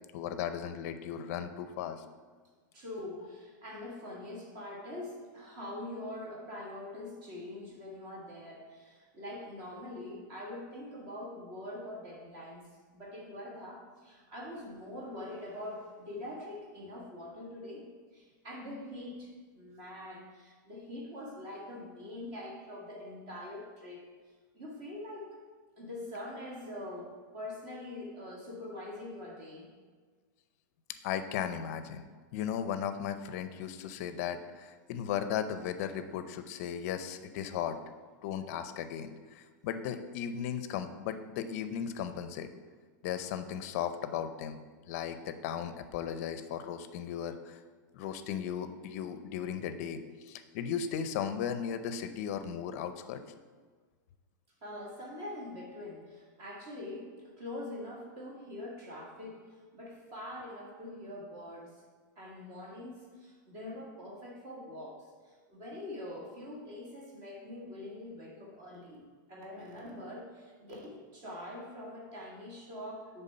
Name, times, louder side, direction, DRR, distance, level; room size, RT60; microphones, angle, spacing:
voice 1, 0.1-2.0 31.0-37.8 38.2-42.5 43.0-44.6 44.9-47.6 47.9-53.2, left 8 dB, 45° left, 9 dB, 0.5 m, -36 dB
voice 2, 2.7-12.6 12.9-24.1 24.5-25.4 25.8-29.7 54.6-61.8 62.1-69.0 69.3-73.2, left 1 dB, 35° right, -3 dB, 1.6 m, -44 dB
8.2 x 3.5 x 5.5 m, 1.5 s
supercardioid pair, 155°, 11 cm